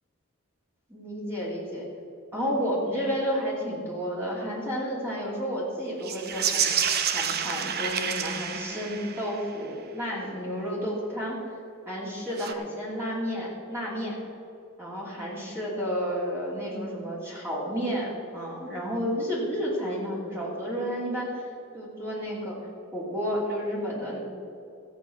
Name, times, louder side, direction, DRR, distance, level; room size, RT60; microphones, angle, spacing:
voice 1, 0.9-1.9 2.3-6.7 7.1-11.4 11.9-14.2 14.8-22.6 22.9-24.2, equal, 10° right, -6 dB, 2.8 m, -31 dB
sound 1, 6.0-9.5 12.3-12.5, right 8 dB, 50° right, 0.8 m, -29 dB
14.5 x 8.3 x 6.1 m, 2.8 s
head